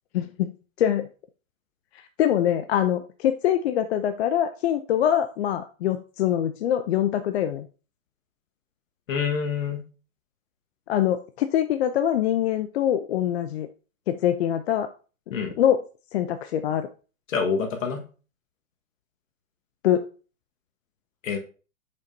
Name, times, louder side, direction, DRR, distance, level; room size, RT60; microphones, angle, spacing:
voice 1, 0.1-0.5 0.8-1.1 2.2-7.7 10.9-13.7 14.1-14.9 15.6-15.8 16.1-16.9 19.8-20.1, left 10 dB, 50° left, 9 dB, 0.5 m, -24 dB
voice 2, 9.1-9.8 15.3-15.5 17.3-18.0 21.2-21.4, left 6 dB, 70° left, 4 dB, 1.5 m, -26 dB
6.8 x 5.3 x 2.7 m, 0.36 s
hypercardioid pair, 125°, 41 cm